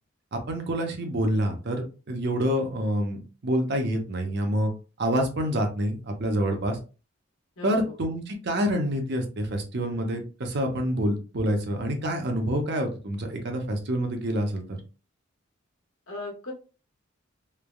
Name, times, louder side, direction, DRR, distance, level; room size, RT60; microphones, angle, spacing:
voice 1, 0.3-4.7 5.0-6.8 7.6-14.8, equal, 55° right, 4 dB, 0.7 m, -27 dB
voice 2, 7.6-8.0 16.1-16.5, left 2 dB, 80° left, 1 dB, 1.0 m, -38 dB
3.3 x 2.2 x 2.2 m, 0.33 s
head